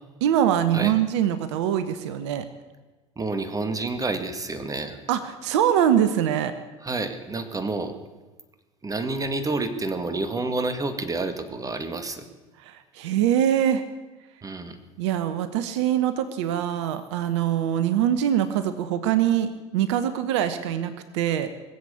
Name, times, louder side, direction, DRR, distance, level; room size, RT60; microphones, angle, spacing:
voice 1, 0.2-2.5 5.1-6.5 12.6-13.8 15.0-21.5, right 10 dB, 75° right, 12 dB, 1.0 m, -23 dB
voice 2, 3.2-5.0 6.8-7.9 8.8-12.2 14.4-14.8, right 3 dB, 25° right, 9 dB, 1.9 m, -29 dB
20.5 x 7.9 x 8.4 m, 1.2 s
hypercardioid pair, 70°, 15 cm